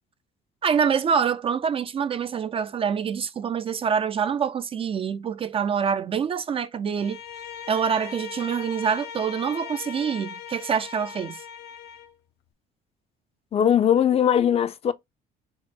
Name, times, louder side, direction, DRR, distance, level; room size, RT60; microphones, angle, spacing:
voice 1, 0.6-7.2 7.7-11.4, right 7 dB, 35° right, 0.3 m, -26 dB
Bowed string instrument, 7.0-12.2, left 8 dB, 75° left, 0.6 m, -39 dB
voice 2, 13.5-14.9, left 9 dB, 35° left, 0.4 m, -20 dB
4.3 x 2.0 x 4.4 m
cardioid pair, 110°, 17 cm